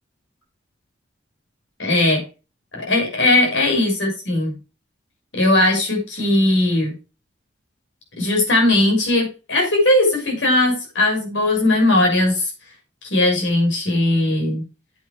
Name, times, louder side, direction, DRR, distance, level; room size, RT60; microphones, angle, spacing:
voice 1, 1.8-2.2 2.7-4.6 5.3-6.9 8.2-12.5 13.1-14.6, left 2 dB, 70° left, 1 dB, 6.2 m, -18 dB
9.1 x 8.1 x 4.7 m, 0.31 s
head